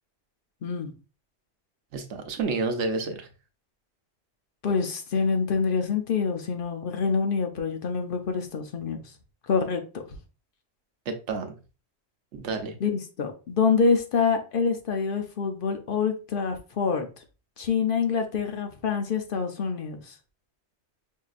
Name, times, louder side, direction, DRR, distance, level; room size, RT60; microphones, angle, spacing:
voice 1, 0.6-0.9 4.6-9.0 9.5-10.2 12.8-17.2 17.6-20.1, left 5 dB, 55° left, 0.8 m, -26 dB
voice 2, 1.9-3.3 11.1-11.5 12.3-12.7, right 4 dB, 85° right, 1.1 m, -30 dB
5.5 x 2.7 x 2.4 m
omnidirectional pair, 1.2 m